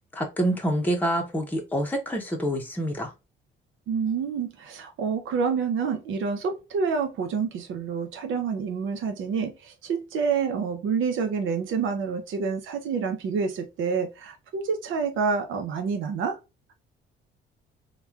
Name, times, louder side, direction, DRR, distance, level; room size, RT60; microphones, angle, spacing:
voice 1, 0.1-3.1, right 1 dB, 10° left, 0.7 m, -27 dB
voice 2, 3.9-16.4, right 5 dB, 80° right, 0.7 m, -28 dB
3.0 x 2.3 x 2.3 m
cardioid pair, 90°, 20 cm